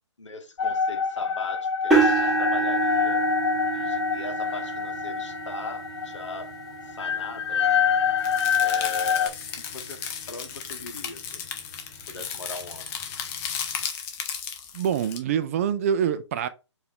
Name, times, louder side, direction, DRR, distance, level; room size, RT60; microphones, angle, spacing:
voice 1, 0.2-3.2 3.7-6.5 6.9-7.7 8.5-10.0 10.3-11.5 12.1-13.0, left 3 dB, 80° left, 1.1 m, -40 dB
sound 1, 0.6-9.3, left 7 dB, 60° left, 0.4 m, -26 dB
sound 2, 1.9-9.9 10.6-10.8 11.2-11.3 12.7-12.8, right 4 dB, ahead, 1.2 m, -28 dB
sound 3, 8.2-15.2, left 7 dB, 15° left, 0.6 m, -35 dB
voice 2, 14.7-16.5, right 8 dB, 30° right, 0.5 m, -25 dB
4.8 x 2.7 x 3.6 m
figure-of-eight pair, 145°, 15 cm